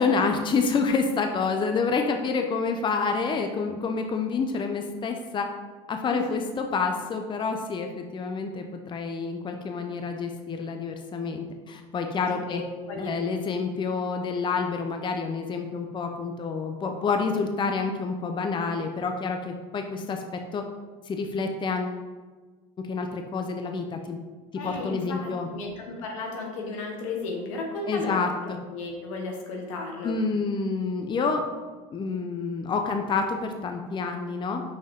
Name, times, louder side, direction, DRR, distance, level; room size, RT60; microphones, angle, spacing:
voice 1, 0.0-5.5 5.9-12.6 13.0-20.6 21.1-22.0 22.8-24.2 24.6-25.5 27.9-28.6 30.0-31.4 31.9-34.6, left 4 dB, 30° left, 5 dB, 0.6 m, -28 dB
voice 2, 12.5-13.2 24.6-28.2 28.5-30.2, left 3 dB, 85° left, 1 dB, 1.3 m, -34 dB
5.8 x 5.1 x 3.7 m, 1.3 s
supercardioid pair, 90°, 16 cm